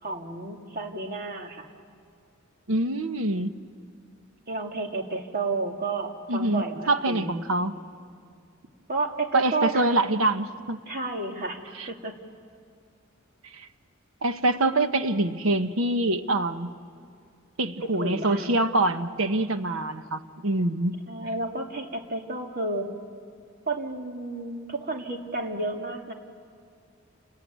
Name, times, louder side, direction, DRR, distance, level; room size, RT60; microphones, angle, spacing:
voice 1, 0.0-1.7 4.5-7.5 8.9-9.9 10.9-11.6 11.9-12.2 17.8-18.5 21.1-22.9 23.7-26.1, right 3 dB, 50° right, 2 dB, 2.5 m, -31 dB
voice 2, 2.7-3.5 6.3-7.7 9.3-10.8 11.7-11.9 13.5-13.7 14.2-16.7 17.6-21.0, right 2 dB, 90° right, 9 dB, 1.1 m, -25 dB
29.0 x 21.5 x 9.4 m, 2.3 s
head